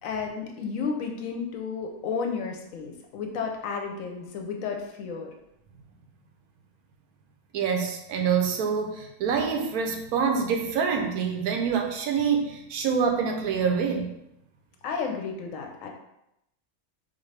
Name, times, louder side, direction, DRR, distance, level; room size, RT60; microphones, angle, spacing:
voice 1, 0.0-5.3 14.8-15.9, left 5 dB, 70° left, 3 dB, 0.9 m, -32 dB
voice 2, 7.5-14.1, right 6 dB, 85° right, 3 dB, 1.1 m, -26 dB
3.9 x 2.6 x 3.2 m, 0.83 s
omnidirectional pair, 1.5 m